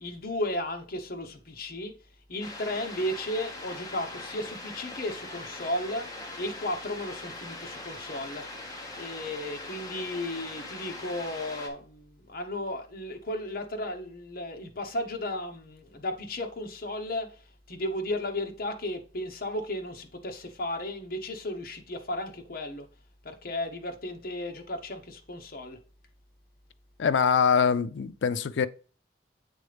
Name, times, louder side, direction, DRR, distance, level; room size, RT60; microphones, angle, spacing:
voice 1, 0.0-2.0 2.3-6.1 6.4-8.5 9.0-17.3 17.7-22.9 23.2-25.8, left 1 dB, 50° left, 1.0 m, -34 dB
sound 1, 2.4-11.7, left 2 dB, 20° left, 1.1 m, -41 dB
voice 2, 27.0-28.7, left 6 dB, 80° left, 0.4 m, -23 dB
8.2 x 3.8 x 3.4 m
head